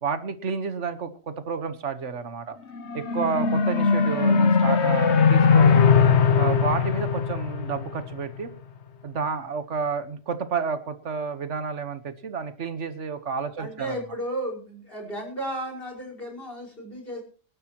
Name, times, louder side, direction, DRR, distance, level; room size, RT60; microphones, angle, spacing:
voice 1, 0.0-2.6 2.9-5.8 6.4-8.5 9.0-13.9, right 5 dB, 85° right, 11 dB, 1.6 m, -30 dB
sound 1, 2.7-8.3, left 5 dB, 70° left, 1.3 m, -20 dB
voice 2, 13.6-17.2, right 1 dB, 50° left, 0 dB, 5.5 m, -34 dB
25.0 x 12.0 x 3.0 m, 0.37 s
omnidirectional pair, 1.2 m